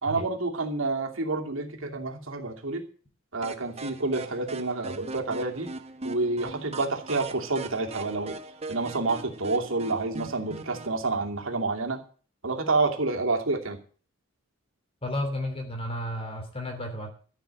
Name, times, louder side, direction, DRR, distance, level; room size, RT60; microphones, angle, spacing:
voice 1, 0.0-2.9 3.3-5.7 6.0-8.4 8.7-12.0 12.4-13.8, right 3 dB, 70° right, 3 dB, 2.7 m, -28 dB
sound 1, 3.4-11.0, right 3 dB, 30° right, 1.1 m, -40 dB
voice 2, 15.0-17.1, left 1 dB, 30° left, 4 dB, 2.9 m, -32 dB
14.0 x 6.4 x 8.8 m, 0.42 s
head